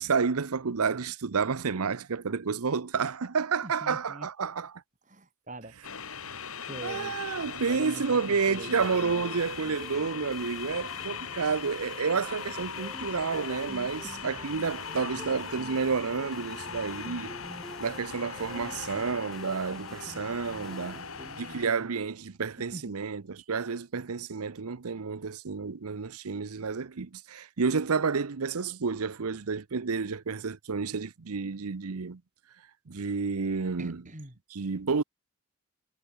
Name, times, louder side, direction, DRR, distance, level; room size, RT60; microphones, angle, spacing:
voice 1, 0.0-4.7 6.8-17.3 17.8-21.1 21.4-32.2 32.9-34.0 34.5-35.0, right 5 dB, 85° right, 0.8 m, -30 dB
voice 2, 3.6-4.3 5.1-5.7 6.6-7.1 7.7-8.8 14.0-14.3 20.9-21.9 22.4-22.8 33.8-34.4, right 1 dB, 35° right, 5.0 m, -44 dB
sound 1, 5.8-21.7, left 6 dB, 75° left, 3.6 m, -39 dB
sound 2, 8.8-21.9, equal, ahead, 2.7 m, -49 dB
head